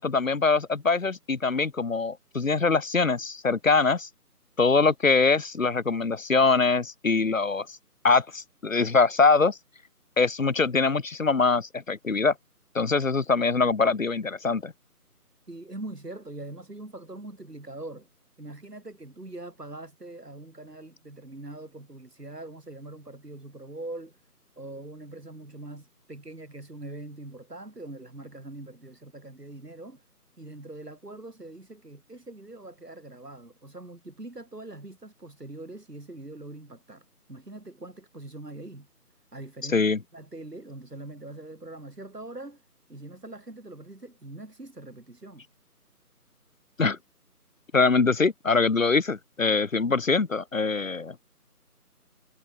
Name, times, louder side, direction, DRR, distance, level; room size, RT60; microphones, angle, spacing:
voice 1, 0.0-4.1 4.6-7.8 8.0-9.6 10.2-12.3 12.7-14.7 39.7-40.0 46.8-47.0 47.7-51.1, left 4 dB, 55° left, 1.2 m, -23 dB
voice 2, 15.5-18.1 18.4-24.2 24.6-30.0 30.4-38.9 39.3-39.8 40.1-42.6 42.9-45.5, right 2 dB, 80° right, 6.1 m, -42 dB
figure-of-eight pair, 165°, 47 cm